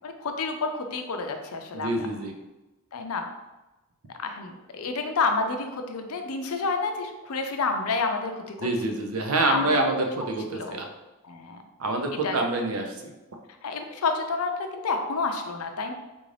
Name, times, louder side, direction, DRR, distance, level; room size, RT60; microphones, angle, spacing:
voice 1, 0.0-2.1 2.9-3.2 4.2-8.7 9.5-9.7 10.5-10.8 11.2-11.6 12.2-12.4 13.6-15.9, left 4 dB, 85° left, 5 dB, 0.5 m, -29 dB
voice 2, 1.7-2.3 8.6-10.9 11.8-13.1, right 2 dB, 75° right, 3 dB, 0.6 m, -26 dB
3.8 x 2.5 x 3.2 m, 1.0 s
head